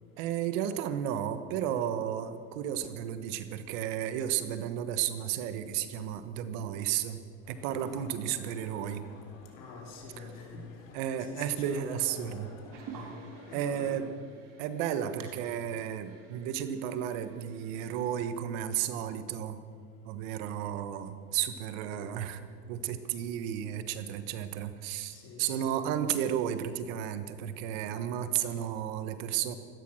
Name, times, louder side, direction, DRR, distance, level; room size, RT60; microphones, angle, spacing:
voice 1, 0.2-7.2 7.5-9.1 10.2-10.3 10.9-12.5 13.5-14.0 14.6-19.6 20.0-29.6, right 10 dB, 70° right, 11 dB, 1.4 m, -33 dB
sound 1, 7.4-14.0, left 3 dB, 85° left, 3.4 m, -53 dB
voice 2, 7.8-8.2 9.5-10.8 11.2-13.2 13.5-14.1 25.1-25.8, left 3 dB, 55° left, 0 dB, 4.7 m, -46 dB
sound 2, 12.7-18.3, right 5 dB, 55° right, 2.6 m, -51 dB
16.5 x 13.0 x 6.3 m, 2.1 s
supercardioid pair, 100°, 39 cm